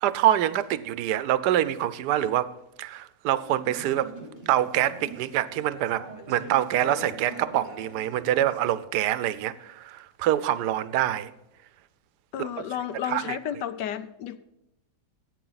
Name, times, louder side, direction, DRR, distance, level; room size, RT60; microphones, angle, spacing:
voice 1, 0.0-2.5 2.8-4.1 4.5-11.3 12.4-12.5 13.1-13.4, right 12 dB, 75° right, 1.2 m, -25 dB
Conversation / Chatter, 3.4-8.8, right 1 dB, 20° left, 1.4 m, -43 dB
voice 2, 12.3-14.4, left 9 dB, 80° left, 1.3 m, -32 dB
15.0 x 8.8 x 4.0 m
omnidirectional pair, 1.9 m